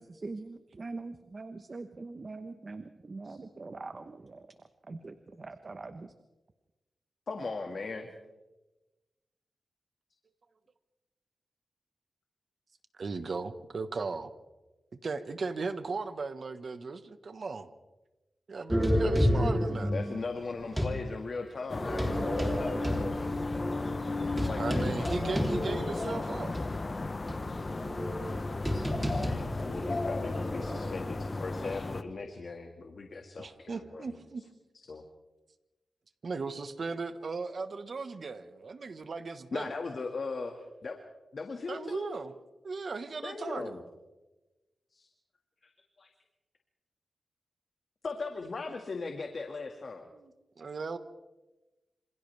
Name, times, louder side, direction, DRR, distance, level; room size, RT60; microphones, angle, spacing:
voice 1, 0.0-4.5 4.9-6.1, right 3 dB, 40° right, 9 dB, 1.1 m, -43 dB
voice 2, 7.3-8.1 19.9-23.2 24.4-24.9 28.9-34.2 34.9-35.0 39.5-41.0 41.3-42.1 43.2-43.8 44.9-45.1 45.6-45.7 46.0-46.1 48.0-50.1, left 4 dB, 55° left, 3 dB, 2.0 m, -38 dB
voice 3, 13.0-14.3 15.0-17.7 18.5-19.9 24.3-26.5 33.4-34.4 36.2-39.7 41.7-42.3 42.6-43.7 50.1-51.0, right 4 dB, 55° right, 9 dB, 1.5 m, -37 dB
sound 1, 18.7-21.0 21.8-26.1 26.5-26.6 27.3-30.8, equal, 10° right, 3.4 m, -31 dB
sound 2, 21.7-32.0, left 2 dB, 30° left, 1.0 m, -34 dB
27.5 x 27.5 x 3.5 m, 1.1 s
wide cardioid pair, 115°, 0 cm